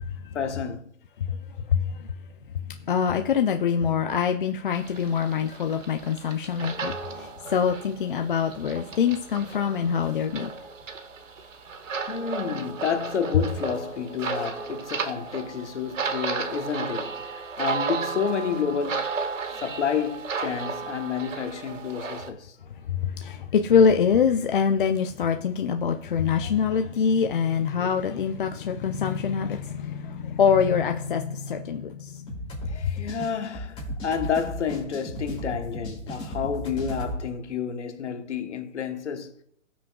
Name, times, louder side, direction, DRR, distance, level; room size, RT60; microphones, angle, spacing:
voice 1, 0.3-0.9 12.1-19.1 19.6-22.6 32.7-39.3, left 7 dB, 65° left, 1.3 m, -30 dB
voice 2, 1.2-2.1 2.5-10.7 22.9-32.3 32.7-32.9, left 7 dB, 45° left, 0.5 m, -25 dB
sound 1, 4.7-22.3, right 4 dB, 80° right, 1.4 m, -34 dB
sound 2, 32.3-37.2, equal, 15° left, 2.7 m, -35 dB
16.0 x 6.2 x 2.3 m
hypercardioid pair, 155°, 38 cm